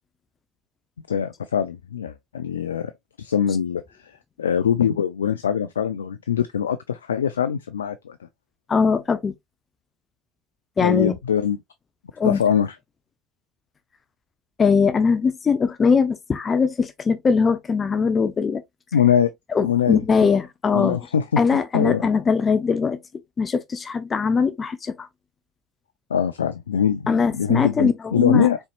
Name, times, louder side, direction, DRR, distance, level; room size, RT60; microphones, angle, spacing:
voice 1, 1.1-2.9 3.2-4.1 4.4-8.2 10.8-11.6 12.2-12.8 18.9-19.3 19.6-20.0 20.7-22.0 26.1-28.6, left 8 dB, 85° left, 0.4 m, -23 dB
voice 2, 8.7-9.3 10.8-11.2 12.2-12.4 14.6-18.6 19.5-21.0 21.4-23.0 23.4-25.1 27.1-28.5, left 5 dB, 35° left, 0.7 m, -21 dB
4.4 x 4.1 x 2.4 m
hypercardioid pair, 65°, 0 cm